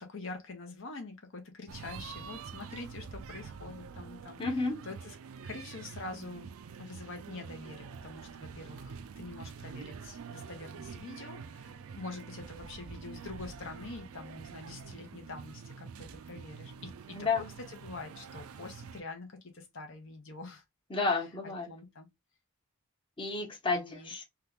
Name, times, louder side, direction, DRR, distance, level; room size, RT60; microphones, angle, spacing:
voice 1, 0.0-4.4 4.9-5.1 5.4-6.5 6.8-20.6 21.7-22.1 23.7-24.1, left 3 dB, 60° left, 0.8 m, -45 dB
sound 1, 1.7-19.0, right 6 dB, 75° right, 0.4 m, -46 dB
voice 2, 4.4-4.8 17.1-17.5 20.9-21.7 23.2-24.2, left 4 dB, 25° left, 0.8 m, -31 dB
2.8 x 2.3 x 3.3 m
head